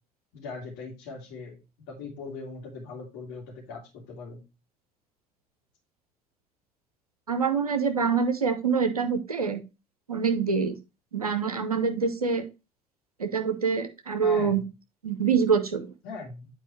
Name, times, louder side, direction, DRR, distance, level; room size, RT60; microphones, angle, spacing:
voice 1, 0.3-1.6 1.9-4.4 14.2-14.6 16.0-16.5, left 4 dB, 60° left, -1 dB, 3.0 m, -40 dB
voice 2, 7.3-9.6 10.1-10.7 11.1-12.4 13.2-14.6 15.0-15.9, right 5 dB, 90° right, 7 dB, 0.7 m, -25 dB
8.9 x 4.6 x 3.1 m, 0.26 s
figure-of-eight pair, 55°, 19 cm